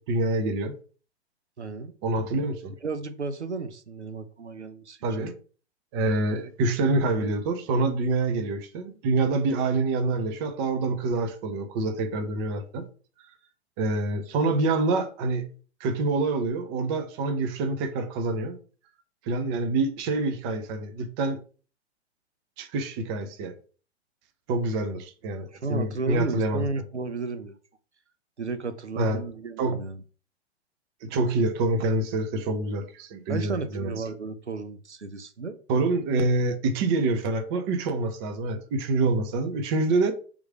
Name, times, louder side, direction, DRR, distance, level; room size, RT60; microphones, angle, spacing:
voice 1, 0.1-0.7 2.0-2.7 5.0-5.3 5.9-12.9 13.8-15.5 15.8-18.6 19.3-21.4 22.6-23.5 24.5-26.7 29.0-29.2 29.6-29.8 31.0-33.9 35.7-40.1, right 2 dB, 25° right, 0.5 m, -26 dB
voice 2, 1.6-1.9 2.8-5.0 25.5-27.6 28.4-30.0 33.3-35.6, right 3 dB, 85° right, 0.6 m, -33 dB
3.6 x 3.1 x 4.7 m
figure-of-eight pair, 110°, 33 cm